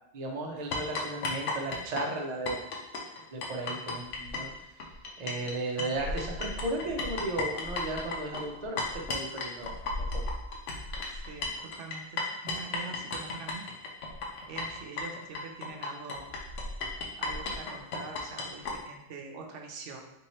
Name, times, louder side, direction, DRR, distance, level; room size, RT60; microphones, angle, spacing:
voice 1, 0.1-2.6 3.3-4.5 5.2-9.8 10.1-10.2, right 2 dB, 45° right, 1 dB, 0.7 m, -35 dB
sound 1, 0.7-5.5 5.8-18.8, left 3 dB, 85° left, 1.1 m, -34 dB
voice 2, 11.1-13.7 14.5-16.3 17.2-20.0, right 4 dB, 90° right, 2 dB, 1.0 m, -44 dB
3.5 x 3.0 x 4.2 m, 0.86 s
omnidirectional pair, 1.2 m